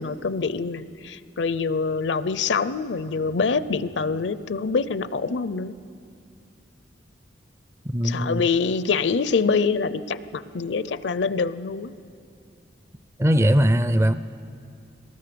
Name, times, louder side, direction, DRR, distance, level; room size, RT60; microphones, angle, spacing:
voice 1, 0.0-5.7 8.0-11.9, left 4 dB, 65° left, 15 dB, 0.5 m, -25 dB
voice 2, 7.9-8.4 13.2-14.1, equal, 15° right, 12 dB, 0.4 m, -20 dB
22.5 x 19.5 x 6.8 m, 2.5 s
head